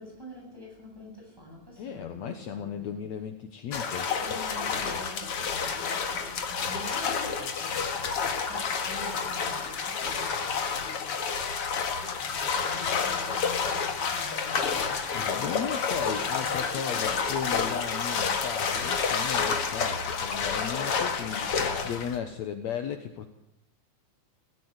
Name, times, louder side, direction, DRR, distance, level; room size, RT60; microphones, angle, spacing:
voice 1, 0.0-3.1 3.8-11.3 12.0-15.4 15.9-16.7, equal, 5° right, -1 dB, 7.8 m, -47 dB
voice 2, 1.8-4.1 15.1-23.3, left 8 dB, 65° left, 7 dB, 2.3 m, -35 dB
sound 1, 3.7-22.2, left 6 dB, 50° left, 2.4 m, -29 dB
17.5 x 17.0 x 9.8 m, 0.82 s
omnidirectional pair, 3.7 m